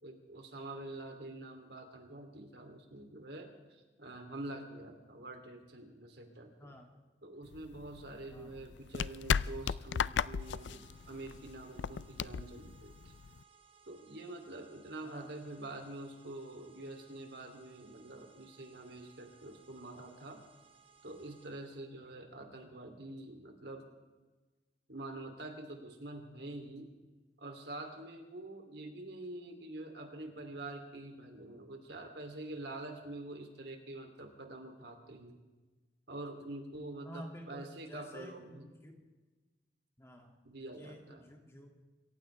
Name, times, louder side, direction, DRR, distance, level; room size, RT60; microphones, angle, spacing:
voice 1, 0.0-6.7 7.2-13.1 13.9-20.4 21.0-23.8 24.9-26.9 27.4-35.4 36.1-38.7 40.4-41.2, right 2 dB, 70° right, 4 dB, 2.8 m, -46 dB
voice 2, 6.6-6.9 8.3-8.5 15.0-15.3 37.0-39.0 40.0-40.3 40.7-41.7, equal, 15° left, 2 dB, 2.2 m, -50 dB
sound 1, 7.5-13.4, left 7 dB, 85° left, 0.4 m, -36 dB
sound 2, 10.4-21.8, right 6 dB, 30° right, 2.5 m, -63 dB
27.0 x 15.0 x 3.4 m, 1.2 s
head